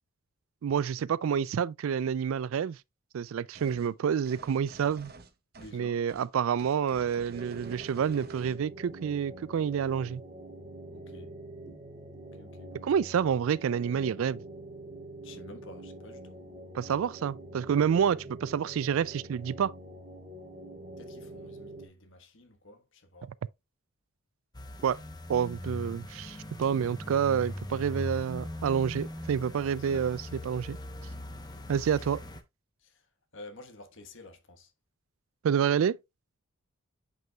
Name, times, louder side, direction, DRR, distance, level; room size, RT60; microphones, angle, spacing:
voice 1, 0.6-2.8 3.1-5.1 5.7-10.2 12.8-14.4 16.7-19.7 24.8-25.0 25.3-30.8 31.7-32.2 35.4-36.0, right 7 dB, 65° right, 0.3 m, -28 dB
sound 1, 3.5-3.9 4.2-5.8 6.1-6.3 6.6-8.6, right 3 dB, 45° right, 0.9 m, -50 dB
voice 2, 5.6-6.0 10.9-11.3 12.4-13.1 15.2-16.4 21.0-23.3 31.5-32.0 32.8-32.9 33.3-34.7, left 2 dB, 60° left, 1.3 m, -51 dB
sound 2, 7.3-21.9, right 1 dB, 30° right, 2.2 m, -45 dB
sound 3, 24.5-32.4, left 1 dB, 20° left, 0.8 m, -40 dB
9.1 x 5.4 x 2.3 m
head